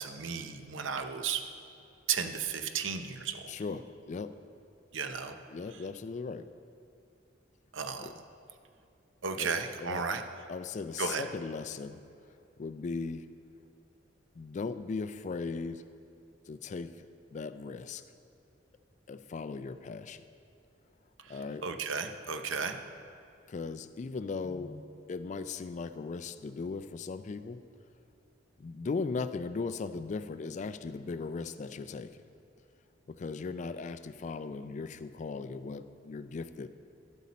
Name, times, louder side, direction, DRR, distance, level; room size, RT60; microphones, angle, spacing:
voice 1, 0.0-1.4 2.1-3.4 4.9-5.3 7.7-8.1 9.2-10.2 11.0-11.2 21.2-21.3 21.6-22.8, right 6 dB, 85° right, 7 dB, 0.7 m, -34 dB
voice 2, 3.5-4.4 5.5-6.5 8.0-8.1 9.4-9.5 9.8-10.0 10.5-12.0 12.6-13.3 14.4-15.8 16.5-17.1 17.3-18.0 19.1-20.2 21.3-21.6 23.5-24.8 25.1-27.6 28.6-32.2 33.1-36.7, left 4 dB, 40° left, 12 dB, 0.3 m, -38 dB
12.0 x 8.0 x 4.2 m, 2.5 s
head